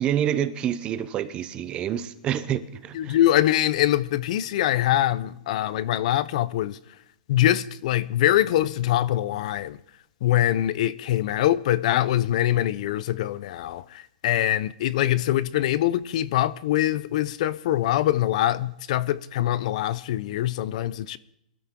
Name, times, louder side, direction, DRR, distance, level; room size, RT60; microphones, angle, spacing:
voice 1, 0.0-3.2, right 10 dB, 20° right, 0.7 m, -27 dB
voice 2, 2.9-6.8 7.3-9.8 10.2-21.2, left 13 dB, 50° left, 0.6 m, -23 dB
22.0 x 12.5 x 3.7 m
hypercardioid pair, 160°, 5 cm